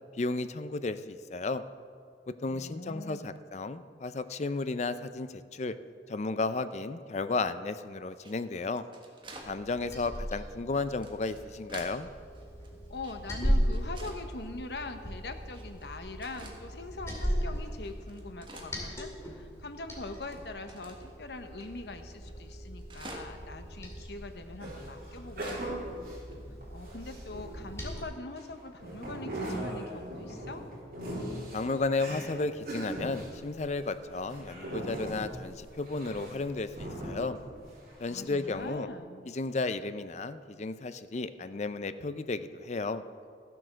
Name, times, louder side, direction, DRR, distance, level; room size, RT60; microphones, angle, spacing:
voice 1, 0.1-1.6 2.3-5.7 6.1-8.8 9.4-12.1 31.5-37.4 38.0-38.9 39.3-43.0, left 3 dB, 40° left, 12 dB, 0.5 m, -33 dB
voice 2, 2.5-3.4 12.9-25.9 26.7-30.6 38.1-39.3, left 2 dB, 70° left, 7 dB, 0.9 m, -43 dB
sound 1, 8.1-9.5 10.0-10.2 10.7-12.0 12.3-13.4 13.7-14.2 14.8-14.9 15.5-15.9 16.2-16.6 17.1-17.2 17.6-19.2 19.5-19.6 19.9-21.1 21.6-21.7 22.0-22.1 22.3-23.5 23.9-24.0 24.6-25.7 26.0-26.1 26.3-26.4 27.1-27.3, right 2 dB, 30° right, 1.4 m, -49 dB
Liquid, 9.4-28.0, equal, 15° left, 2.3 m, -37 dB
sound 2, 24.6-27.9 28.4-38.0 38.3-38.6, right 1 dB, 55° right, 3.6 m, -40 dB
14.0 x 7.7 x 6.4 m, 2.2 s
head